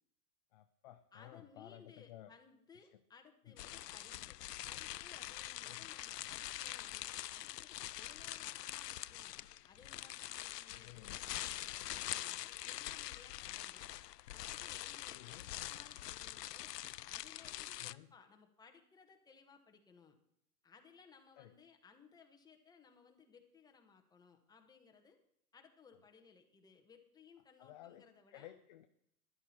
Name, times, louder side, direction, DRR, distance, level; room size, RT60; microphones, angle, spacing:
voice 1, 0.5-2.3 3.5-3.6 5.6-5.9 10.7-11.2 15.1-15.5 17.8-18.1 21.4-21.5 27.6-28.9, left 14 dB, 30° left, 8 dB, 0.4 m, -55 dB
voice 2, 1.1-4.4 4.6-9.4 9.7-13.9 14.3-16.7 17.0-20.2 20.6-25.2 25.5-28.5, left 5 dB, 10° left, 4 dB, 1.1 m, -62 dB
sound 1, 3.6-17.9, left 14 dB, 85° left, 0.6 m, -45 dB
13.0 x 11.0 x 4.3 m, 0.73 s
hypercardioid pair, 135°, 47 cm